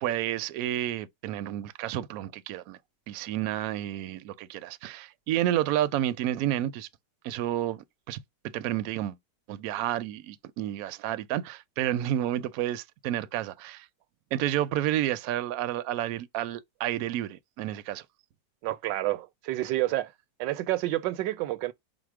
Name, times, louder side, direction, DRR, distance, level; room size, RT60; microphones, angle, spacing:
voice 1, 0.0-2.8 3.1-6.9 7.2-8.2 8.5-9.2 9.5-13.9 14.3-18.0, right 12 dB, 70° right, 0.9 m, -30 dB
voice 2, 18.6-20.1 20.4-21.7, right 16 dB, 85° right, 1.3 m, -29 dB
5.0 x 2.0 x 4.6 m
omnidirectional pair, 1.9 m